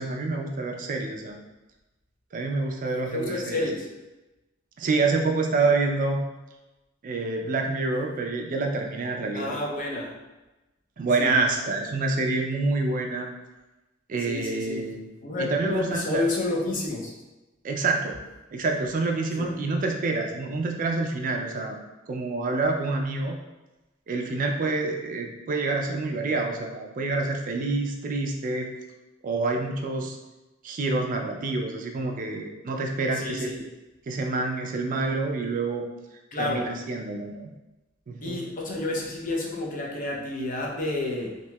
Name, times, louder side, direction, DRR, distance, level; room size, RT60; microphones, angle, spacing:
voice 1, 0.0-1.4 2.3-3.6 4.8-6.2 7.0-9.6 11.0-13.3 14.1-15.1 15.4-16.2 17.6-18.2 18.5-21.8 22.1-23.4 24.1-28.7 29.2-30.2 30.6-33.5 34.1-35.9 36.4-37.5 38.1-38.4, right 3 dB, 40° right, 2 dB, 0.3 m, -27 dB
voice 2, 3.1-3.9 9.4-10.2 11.2-11.3 14.2-14.9 15.2-17.1 19.4-19.5 33.1-33.6 36.3-36.7 38.2-41.4, left 2 dB, 45° left, -1 dB, 0.5 m, -30 dB
2.9 x 2.7 x 2.2 m, 1.1 s
head